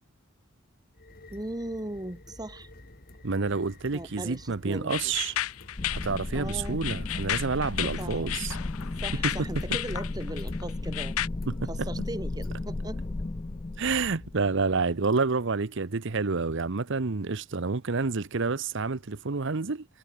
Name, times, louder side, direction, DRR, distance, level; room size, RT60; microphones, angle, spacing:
sound 1, 0.9-14.3, left 1 dB, 45° left, 3.0 m, -51 dB
voice 1, 1.3-2.7 3.9-5.1 6.3-6.8 7.8-8.3 9.0-11.1 11.7-13.0, right 1 dB, 20° right, 1.6 m, -38 dB
voice 2, 3.2-5.3 5.9-8.6 9.2-9.3 11.5-11.7 13.8-19.8, right 4 dB, 60° right, 0.9 m, -29 dB
sound 2, 4.9-11.3, left 13 dB, 90° left, 0.5 m, -33 dB
sound 3, 5.8-15.0, left 2 dB, 25° left, 0.4 m, -35 dB
head